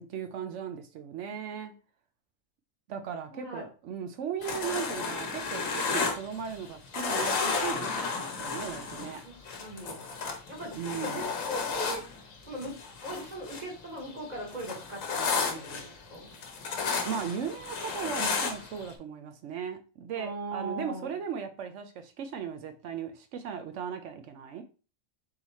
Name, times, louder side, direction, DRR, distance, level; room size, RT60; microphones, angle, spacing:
voice 1, 0.0-1.7 2.9-9.2 10.7-11.3 16.8-24.6, right 7 dB, 70° right, 0.9 m, -37 dB
voice 2, 3.3-3.7 9.2-10.0 10.5-12.0 12.5-12.8 13.0-16.3 20.2-21.2, right 1 dB, 35° right, 1.2 m, -39 dB
sound 1, 4.4-6.7 6.9-13.7 14.0-18.9, left 5 dB, 85° left, 1.2 m, -33 dB
3.9 x 3.0 x 4.0 m
omnidirectional pair, 1.4 m